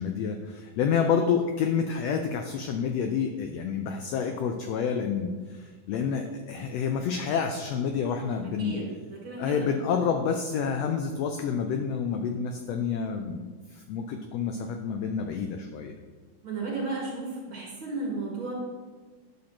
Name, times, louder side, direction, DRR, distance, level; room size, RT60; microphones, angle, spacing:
voice 1, 0.0-8.8 9.4-13.4 13.7-16.0, left 6 dB, 85° left, 4 dB, 1.4 m, -28 dB
voice 2, 8.6-9.7 16.4-18.5, right 3 dB, 45° right, -4 dB, 2.2 m, -34 dB
10.0 x 6.6 x 2.9 m, 1.4 s
omnidirectional pair, 3.5 m